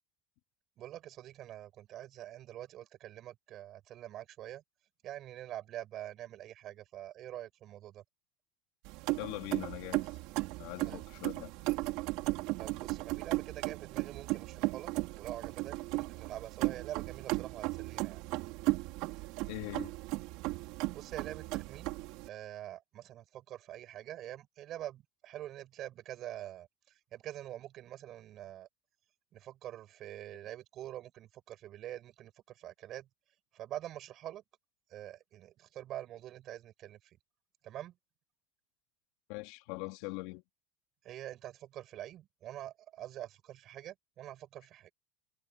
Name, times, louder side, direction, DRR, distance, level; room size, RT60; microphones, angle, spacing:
voice 1, 0.8-4.6 5.0-8.0 10.8-11.1 12.6-18.2 20.9-21.9 22.2-28.7 29.3-33.1 33.5-34.4 34.9-37.0 37.6-37.9 41.0-44.9, right 12 dB, 40° right, 6.4 m, -45 dB
sound 1, 8.8-22.3, right 22 dB, 55° right, 5.3 m, -36 dB
voice 2, 9.2-10.2 10.6-11.5 19.5-19.9 39.3-40.4, left 23 dB, 65° left, 3.6 m, -42 dB
supercardioid pair, 155°, 0 cm